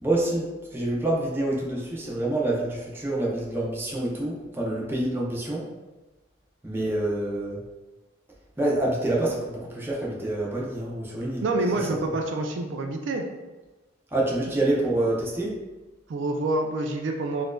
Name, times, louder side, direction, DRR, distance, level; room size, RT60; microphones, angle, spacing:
voice 1, 0.0-5.7 6.6-7.6 8.6-11.4 14.1-15.5, right 1 dB, 10° right, -4 dB, 0.5 m, -27 dB
voice 2, 11.4-13.2 16.1-17.4, right 2 dB, 70° right, 3 dB, 0.3 m, -27 dB
4.2 x 2.4 x 2.2 m, 1.2 s
head